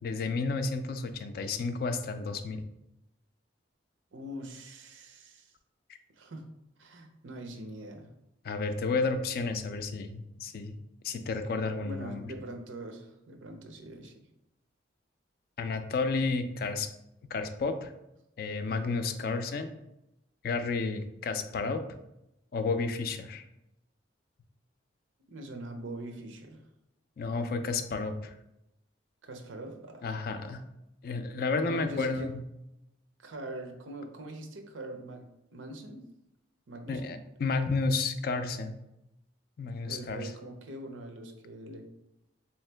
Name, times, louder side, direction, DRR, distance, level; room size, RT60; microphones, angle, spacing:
voice 1, 0.0-2.6 5.9-6.0 8.4-10.8 11.0-12.3 15.6-16.9 17.3-17.9 18.4-19.7 20.4-21.8 22.5-23.4 27.2-28.3 30.0-30.6 31.0-32.4 36.9-38.7 39.6-40.3, left 4 dB, 50° left, 9 dB, 0.3 m, -31 dB
voice 2, 4.1-5.5 6.1-6.4 6.8-8.1 11.8-14.3 25.3-26.6 29.2-30.0 31.6-32.3 33.2-36.0 36.7-37.2 39.8-41.8, right 1 dB, 90° right, 5 dB, 0.6 m, -43 dB
3.6 x 3.0 x 3.3 m, 0.87 s
head